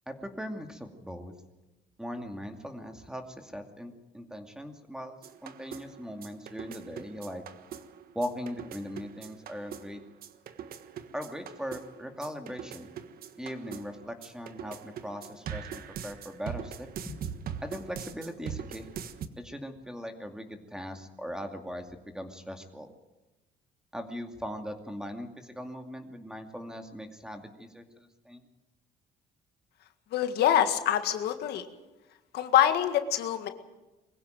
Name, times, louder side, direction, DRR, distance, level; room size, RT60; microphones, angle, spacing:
voice 1, 0.1-1.3 2.0-7.4 8.1-10.0 11.1-12.9 13.4-17.2 17.6-18.9 19.4-21.9 22.1-22.9 23.9-28.4, equal, 5° right, 5 dB, 2.4 m, -39 dB
sound 1, 5.2-19.3, right 8 dB, 60° right, 1.4 m, -42 dB
voice 2, 30.1-31.6 32.3-33.5, left 10 dB, 75° left, 8 dB, 1.8 m, -25 dB
22.5 x 16.0 x 9.2 m, 1.1 s
cardioid pair, 110°, 17 cm